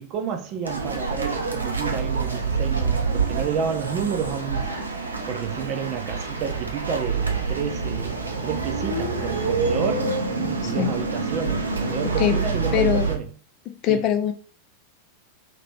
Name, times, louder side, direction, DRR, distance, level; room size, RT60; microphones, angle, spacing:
voice 1, 0.0-4.7 5.3-10.2 10.6-13.3 13.9-14.0, right 7 dB, 35° right, 0.6 m, -30 dB
sound 1, 0.6-13.2, right 4 dB, 75° right, 0.6 m, -26 dB
voice 2, 10.4-10.9 12.2-12.3 12.7-13.1 13.8-14.3, left 10 dB, 40° left, 0.4 m, -22 dB
2.9 x 2.8 x 3.4 m
figure-of-eight pair, 90°, 0 cm